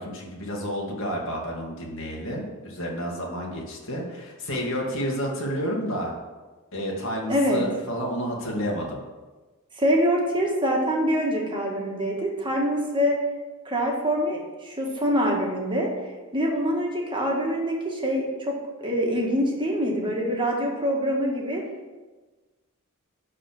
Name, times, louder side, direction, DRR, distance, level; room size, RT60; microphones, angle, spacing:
voice 1, 0.0-6.1 6.7-9.0, equal, 60° left, -2 dB, 2.1 m, -30 dB
voice 2, 7.3-7.6 9.7-13.2 13.7-15.9 16.3-18.5 18.8-21.6, equal, 20° right, -1 dB, 1.8 m, -25 dB
11.5 x 4.3 x 6.1 m, 1.3 s
head